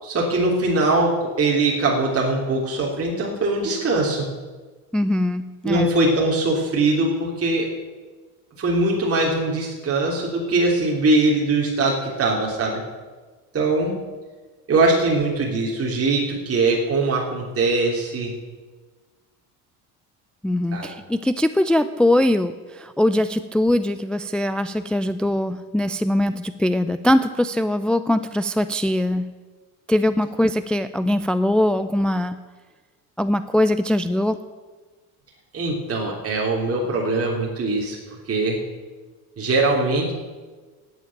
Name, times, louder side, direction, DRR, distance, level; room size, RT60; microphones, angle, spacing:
voice 1, 0.0-4.3 5.6-7.7 8.6-12.8 13.5-13.9 14.7-18.3 20.7-20.9 35.5-38.0 38.3-38.6 39.4-40.1, right 2 dB, 30° right, -2 dB, 3.2 m, -21 dB
voice 2, 4.9-5.9 20.4-29.3 29.9-32.4 33.2-34.4, left 1 dB, ahead, 12 dB, 0.4 m, -21 dB
10.5 x 8.9 x 9.5 m, 1.4 s
hypercardioid pair, 80°, 44 cm